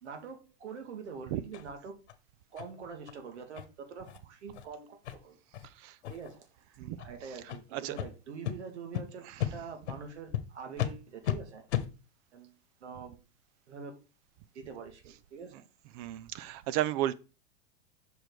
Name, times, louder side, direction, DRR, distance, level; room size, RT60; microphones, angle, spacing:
voice 1, 0.0-2.0 2.5-5.4 6.1-6.5 7.0-11.6 12.3-13.2 13.7-14.0 14.5-15.6, right 5 dB, 85° right, 1.8 m, -45 dB
sound 1, 1.5-1.6 2.1-2.2 2.6-2.7 3.0-3.1 3.5-3.6 4.0-4.2 4.5-4.6 5.0-5.1 5.5-5.7 6.0-6.4 6.9-7.1 7.5-7.6 8.0-8.1 8.4-8.5 8.9-9.0 9.4-9.5 9.9-10.0 10.3-10.4 10.8-10.9 11.2-11.4 11.7-11.9, left 11 dB, 80° left, 1.1 m, -33 dB
voice 2, 9.2-9.6 15.9-17.1, right 13 dB, 35° right, 0.4 m, -33 dB
6.1 x 5.0 x 4.6 m
supercardioid pair, 135°, 33 cm